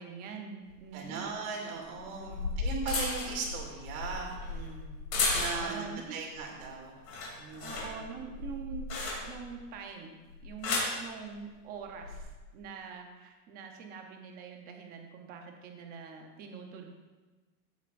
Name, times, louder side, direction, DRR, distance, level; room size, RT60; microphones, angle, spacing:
voice 1, 0.0-1.3 2.1-2.7 5.5-6.2 7.6-8.9 9.2-12.3 12.5-16.9, right 6 dB, 20° right, 3 dB, 0.7 m, -44 dB
sound 1, 0.7-0.8 1.9-5.9 6.3-6.7 7.0-9.5 10.3-11.0 11.9-12.2, left 3 dB, 30° left, 3.0 m, -34 dB
voice 2, 0.9-4.9 5.3-7.0 7.4-8.0, right 4 dB, 55° right, 0 dB, 2.7 m, -38 dB
16.0 x 8.1 x 2.6 m, 1.3 s
supercardioid pair, 170°, 49 cm